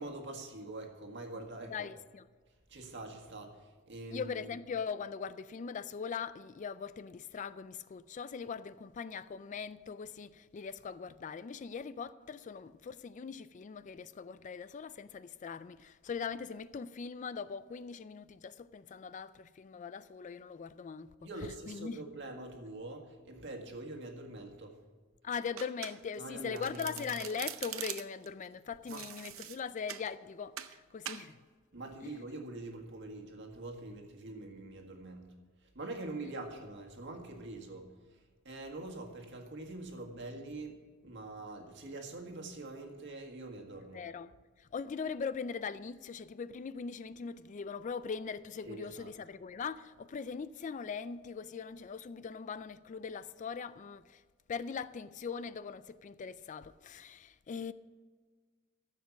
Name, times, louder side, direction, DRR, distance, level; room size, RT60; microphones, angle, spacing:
voice 1, 0.0-1.9 2.7-4.5 21.2-24.8 26.2-27.1 28.8-29.0 31.7-35.3 35.7-38.2 38.4-44.0 48.6-49.1, right 2 dB, 60° right, 1.8 m, -44 dB
voice 2, 1.7-2.2 4.1-21.1 21.4-22.0 25.2-31.4 32.0-32.1 43.9-54.2 54.5-57.7, left 6 dB, 35° left, 0.3 m, -41 dB
Domestic sounds home sounds, 25.6-26.3 26.6-28.3 28.9-30.1 30.6-30.8 31.1-31.3, right 11 dB, 80° right, 0.7 m, -43 dB
14.0 x 7.4 x 6.0 m
head